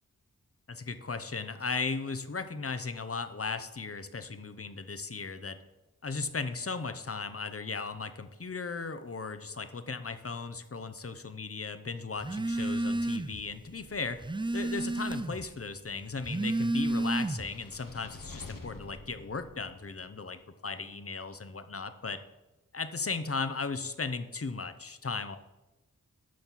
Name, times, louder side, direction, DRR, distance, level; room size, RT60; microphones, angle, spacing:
voice 1, 0.7-5.6 6.0-14.2 14.5-22.2 22.7-25.4, left 4 dB, 45° left, 10 dB, 0.8 m, -36 dB
Telephone, 12.2-13.5 13.8-15.5 16.1-17.6, right 2 dB, 15° right, 0.5 m, -31 dB
sound 1, 17.0-20.3, left 3 dB, 75° left, 1.2 m, -49 dB
12.5 x 4.3 x 7.3 m, 1.0 s
wide cardioid pair, 50°, 34 cm